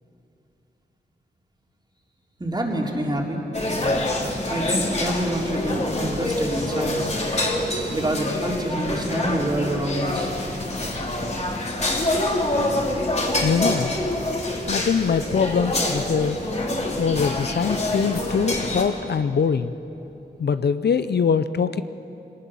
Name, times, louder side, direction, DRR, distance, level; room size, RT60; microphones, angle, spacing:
voice 1, 2.4-3.4 4.4-7.1 7.9-10.3, right 1 dB, 25° right, -1 dB, 3.5 m, -27 dB
sound 1, 3.5-18.8, left 1 dB, 40° left, 3.2 m, -26 dB
voice 2, 13.4-13.9 14.7-16.4 17.0-19.7 20.4-21.8, left 6 dB, 70° left, 12 dB, 0.7 m, -23 dB
22.0 x 18.5 x 7.2 m, 3.0 s
cardioid pair, 70°, 18 cm